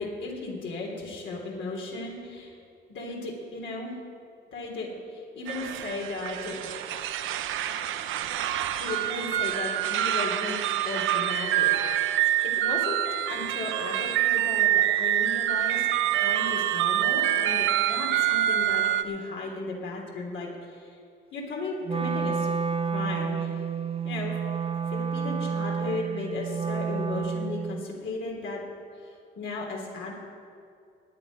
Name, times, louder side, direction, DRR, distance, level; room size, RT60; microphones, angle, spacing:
voice 1, 0.0-2.5 2.9-3.9 4.5-6.5 8.5-13.0 13.3-15.9 16.2-21.0 21.3-22.5 22.8-23.5 24.0-24.3 24.9-28.6 29.4-30.1, left 2 dB, 70° left, -1 dB, 3.2 m, -35 dB
sound 1, 5.5-19.0, right 12 dB, 85° right, 0.7 m, -26 dB
Wind instrument woodwind instrument, 21.9-27.9, right 6 dB, 30° right, 0.6 m, -30 dB
19.5 x 9.3 x 5.2 m, 2.4 s
cardioid pair, 90°, 20 cm